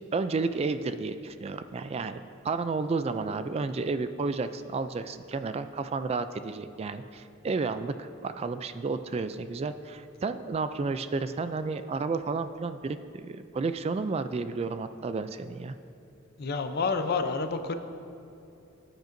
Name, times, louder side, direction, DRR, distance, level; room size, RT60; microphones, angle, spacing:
voice 1, 0.1-15.7, right 4 dB, 30° right, 11 dB, 0.3 m, -32 dB
voice 2, 16.4-17.8, left 4 dB, 50° left, 8 dB, 0.6 m, -29 dB
18.0 x 9.0 x 2.6 m, 2.8 s
head